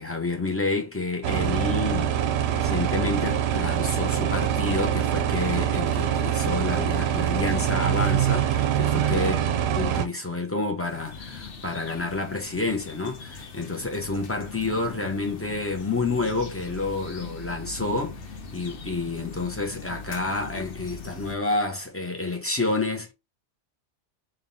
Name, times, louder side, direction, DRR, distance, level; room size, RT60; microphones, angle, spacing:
voice 1, 0.0-9.4 9.7-23.1, left 3 dB, 15° left, 0.9 m, -29 dB
sound 1, 1.2-10.1, right 10 dB, 70° right, 0.8 m, -24 dB
sound 2, 10.8-21.4, left 4 dB, 90° left, 1.1 m, -40 dB
3.6 x 2.7 x 4.0 m
omnidirectional pair, 1.2 m